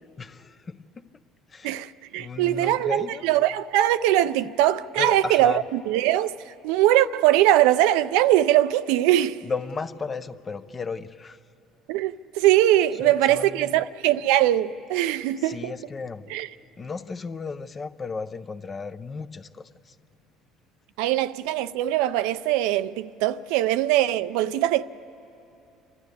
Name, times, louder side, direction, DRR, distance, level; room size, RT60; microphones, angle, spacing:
voice 1, 0.2-1.2 1.5-1.8 2.2-3.2 5.0-5.6 9.4-11.4 12.9-13.8 15.4-16.3 16.8-20.0, left 4 dB, 30° left, 0.6 m, -34 dB
voice 2, 1.6-9.4 11.9-15.7 16.3-16.5 21.0-24.8, right 13 dB, 80° right, 0.4 m, -21 dB
29.5 x 12.5 x 8.2 m
supercardioid pair, 90°, 0 cm